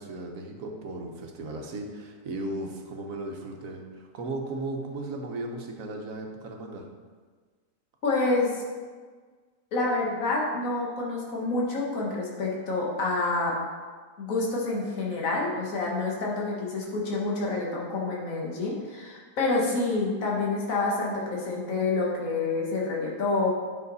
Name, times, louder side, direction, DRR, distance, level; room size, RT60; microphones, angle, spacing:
voice 1, 0.0-6.9, right 2 dB, 65° right, 2 dB, 1.3 m, -36 dB
voice 2, 8.0-8.6 9.7-13.5 14.2-23.5, left 3 dB, 60° left, -3 dB, 1.9 m, -28 dB
9.5 x 5.8 x 4.1 m, 1.5 s
omnidirectional pair, 1.6 m